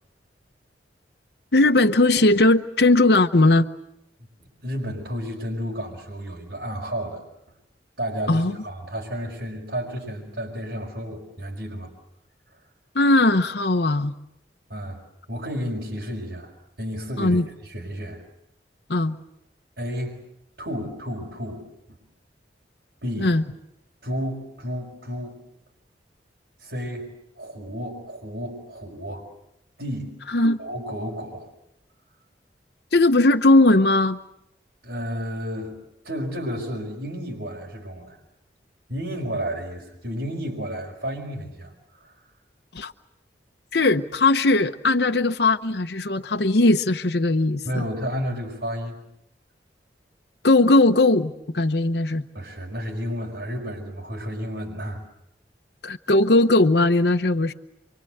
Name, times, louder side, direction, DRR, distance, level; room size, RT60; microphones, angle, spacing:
voice 1, 1.5-3.7 8.3-8.5 12.9-14.1 17.2-17.4 18.9-19.2 23.2-23.4 30.3-30.6 32.9-34.2 42.7-42.9 43.7-47.8 50.4-52.2 55.8-57.5, left 2 dB, 65° left, 6 dB, 1.0 m, -19 dB
voice 2, 4.6-7.2 8.0-11.9 14.7-15.0 15.3-16.5 16.8-18.2 19.8-20.2 20.6-22.0 23.0-23.3 24.0-25.4 26.6-27.1 27.4-29.3 29.8-30.1 30.6-31.5 34.8-35.8 36.0-38.2 38.9-42.2 47.6-49.0 52.3-55.0, equal, 70° right, -4 dB, 5.5 m, -32 dB
28.0 x 25.0 x 8.0 m, 0.81 s
head